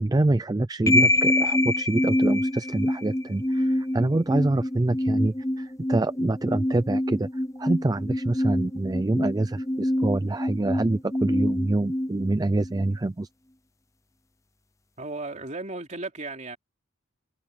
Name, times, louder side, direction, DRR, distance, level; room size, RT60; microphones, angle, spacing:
voice 1, 0.0-7.3 7.6-13.3, right 2 dB, 20° right, 0.4 m, -26 dB
sound 1, 0.9-12.9, left 1 dB, 15° left, 0.7 m, -26 dB
voice 2, 15.0-16.6, right 2 dB, 35° right, 3.2 m, -35 dB
head